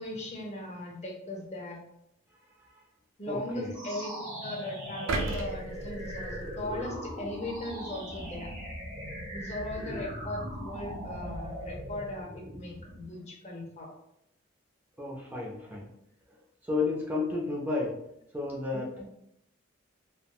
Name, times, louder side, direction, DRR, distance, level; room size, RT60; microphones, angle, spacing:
voice 1, 0.0-1.8 3.2-8.5 9.3-13.9 18.7-19.1, left 1 dB, 35° left, -1 dB, 0.6 m, -38 dB
voice 2, 3.3-3.7 15.0-15.9 16.6-18.0 18.3-18.9, left 3 dB, 10° right, -4 dB, 0.4 m, -32 dB
sound 1, 3.7-13.1, equal, 40° right, 1.0 m, -40 dB
sound 2, 5.1-7.2 7.7-7.9, right 2 dB, 85° right, 0.4 m, -35 dB
3.4 x 2.2 x 2.3 m, 0.78 s
head